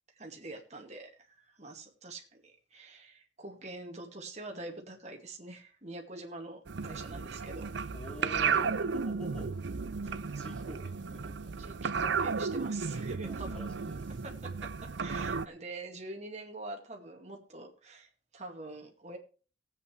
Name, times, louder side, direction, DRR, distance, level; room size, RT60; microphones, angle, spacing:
voice 1, 0.2-7.7 10.3-10.4 11.6-13.6 14.2-19.2, right 2 dB, 40° right, 2 dB, 2.2 m, -45 dB
sound 1, 6.7-15.5, right 5 dB, 70° right, 0.6 m, -34 dB
voice 2, 7.9-9.7 10.0-11.7 13.2-14.2, left 1 dB, 5° left, -1 dB, 3.6 m, -48 dB
18.5 x 8.3 x 3.3 m, 0.38 s
head